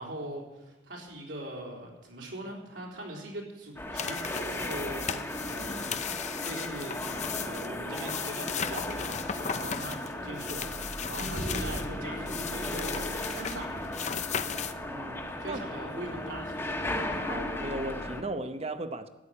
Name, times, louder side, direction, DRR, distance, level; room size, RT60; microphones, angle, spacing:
voice 1, 0.0-4.2 4.6-5.9 6.1-13.7 15.4-16.6 16.9-17.1, right 1 dB, 70° right, 4.0 m, -41 dB
sound 1, 3.8-18.2, left 1 dB, 15° left, 1.4 m, -36 dB
sound 2, 4.0-11.9 12.3-14.7, left 7 dB, 40° left, 0.6 m, -36 dB
voice 2, 14.9-15.6 17.3-19.1, right 2 dB, 35° right, 0.9 m, -36 dB
14.5 x 8.5 x 10.0 m
head